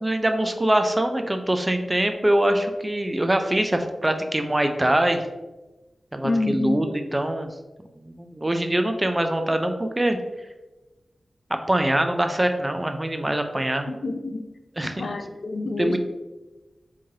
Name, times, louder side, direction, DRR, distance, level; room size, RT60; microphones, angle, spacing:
voice 1, 0.0-5.2 6.1-7.5 8.0-10.2 11.5-13.9 14.8-15.1 15.8-16.0, right 1 dB, 20° right, 6 dB, 0.3 m, -23 dB
voice 2, 6.2-6.8 13.9-14.4 14.8-16.0, left 2 dB, 65° left, 6 dB, 0.3 m, -27 dB
3.7 x 3.1 x 2.7 m, 1.1 s
wide cardioid pair, 110°, 0 cm